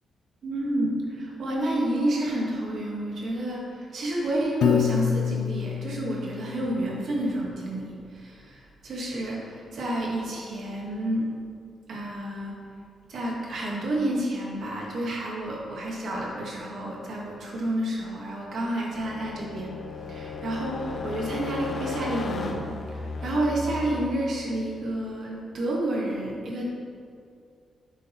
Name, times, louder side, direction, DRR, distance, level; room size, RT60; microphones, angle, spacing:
voice 1, 0.4-11.2 11.9-12.6 13.1-19.8 20.1-22.5 22.9-26.6, right 1 dB, 60° right, -3 dB, 1.7 m, -30 dB
Piano, 4.6-6.8, left 8 dB, 80° left, 0.4 m, -26 dB
sound 1, 18.9-24.1, left 4 dB, 50° left, 0.7 m, -35 dB
11.0 x 3.9 x 4.4 m, 2.3 s
cardioid pair, 130°, 0 cm